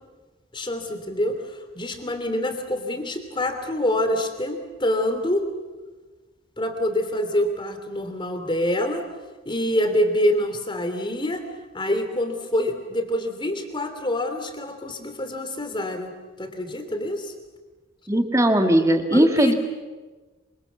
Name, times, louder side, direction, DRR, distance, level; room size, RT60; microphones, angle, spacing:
voice 1, 0.5-5.5 6.6-9.0 9.4-11.4 11.7-16.1 16.4-17.3 19.1-19.5, left 1 dB, 25° left, 7 dB, 2.9 m, -26 dB
voice 2, 18.1-19.5, right 1 dB, 15° right, 5 dB, 1.9 m, -18 dB
26.0 x 25.5 x 7.1 m, 1.3 s
head